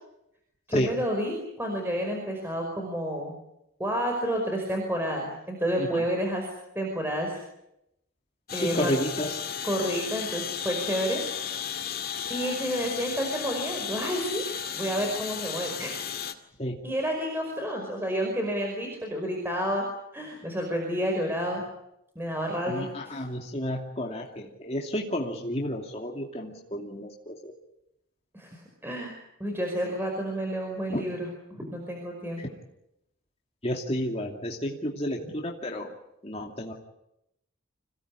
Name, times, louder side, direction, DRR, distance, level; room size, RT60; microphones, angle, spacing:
voice 1, 0.7-3.3 3.8-6.4 6.8-7.4 8.5-8.9 9.6-11.2 12.3-14.4 14.7-16.2 16.8-19.8 20.1-21.6 22.2-23.1 28.3-32.4, equal, 10° right, 1 dB, 5.3 m, -30 dB
sound 1, 8.5-16.3, left 8 dB, 45° left, 2.3 m, -34 dB
voice 2, 8.5-9.5 16.6-16.8 22.7-27.5 30.9-31.0 32.4-32.5 33.6-35.9 36.2-36.7, equal, 30° left, 0 dB, 2.7 m, -31 dB
26.5 x 18.0 x 10.0 m, 0.85 s
head